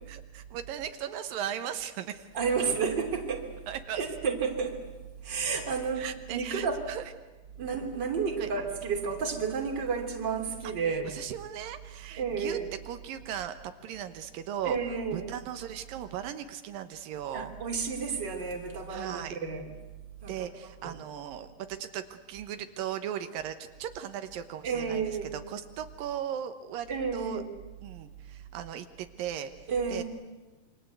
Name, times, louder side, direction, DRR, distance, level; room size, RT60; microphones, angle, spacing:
voice 1, 0.1-2.3 3.7-4.1 6.0-7.1 8.4-8.5 11.1-12.6 12.9-17.5 18.9-19.4 20.3-27.4 27.8-30.0, right 10 dB, 85° right, 8 dB, 2.9 m, -38 dB
voice 2, 2.3-3.5 3.9-4.8 5.2-6.1 6.3-6.8 7.6-11.1 12.2-12.7 14.6-15.3 17.3-19.6 20.2-20.5 20.8-20.9 24.6-25.4 26.9-27.5 29.7-30.0, right 5 dB, 30° right, 2 dB, 3.4 m, -31 dB
27.5 x 25.0 x 8.3 m, 1.2 s
omnidirectional pair, 3.9 m